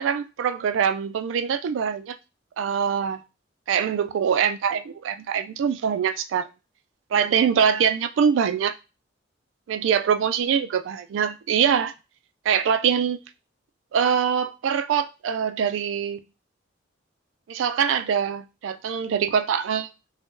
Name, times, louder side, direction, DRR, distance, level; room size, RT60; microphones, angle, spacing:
voice 1, 0.0-2.2 2.6-3.2 3.7-6.5 7.1-8.7 9.7-11.9 12.5-13.2 13.9-16.2 17.5-19.9, right 7 dB, 85° right, 0.3 m, -23 dB
2.5 x 2.1 x 3.6 m
head